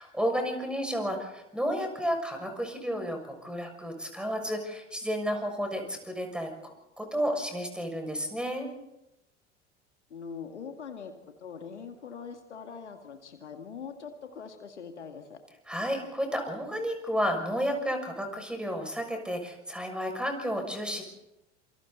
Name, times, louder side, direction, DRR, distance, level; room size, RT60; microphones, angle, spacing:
voice 1, 0.0-6.7 7.0-8.7 15.7-21.0, equal, 5° right, 4 dB, 6.5 m, -32 dB
voice 2, 10.1-11.1 11.4-15.4, left 6 dB, 75° left, 6 dB, 2.1 m, -42 dB
27.5 x 27.0 x 4.2 m, 0.88 s
figure-of-eight pair, 70°, 35 cm